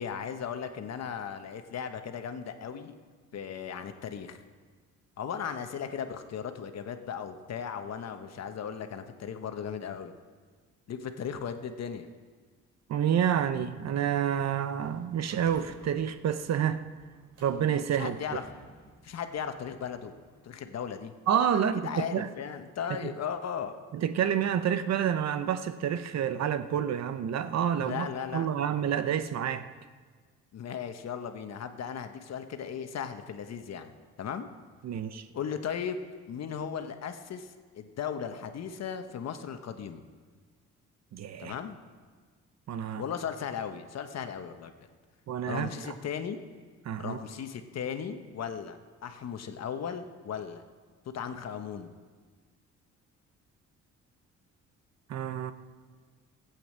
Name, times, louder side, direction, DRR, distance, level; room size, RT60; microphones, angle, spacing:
voice 1, 0.0-3.0 3.3-4.4 5.2-10.1 10.9-12.1 18.0-18.4 19.0-20.1 20.4-21.1 21.5-23.8 27.8-28.5 30.5-33.9 34.2-34.5 35.3-36.0 36.3-40.0 41.4-41.8 43.0-44.7 45.4-46.4 47.0-50.6 51.1-51.9, left 7 dB, 60° left, 7 dB, 1.2 m, -36 dB
voice 2, 12.9-16.8 17.4-18.4 21.3-22.3 23.9-29.7 34.8-35.3 41.1-41.5 42.7-43.0 45.3-45.9 46.8-47.2 55.1-55.5, right 9 dB, 60° right, 11 dB, 0.9 m, -29 dB
sound 1, 14.8-20.5, right 2 dB, 75° right, 3.9 m, -54 dB
14.5 x 8.6 x 7.6 m, 1.5 s
cardioid pair, 90°, 30 cm